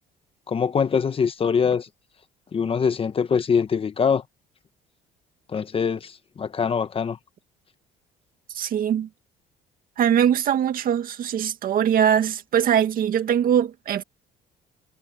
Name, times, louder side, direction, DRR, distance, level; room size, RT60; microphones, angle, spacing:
voice 1, 0.5-1.9 2.5-4.2 5.5-7.2, left 6 dB, 35° left, 1.1 m, -23 dB
voice 2, 8.5-9.1 10.0-14.0, right 9 dB, 55° right, 2.1 m, -22 dB
cardioid pair, 110°, 17 cm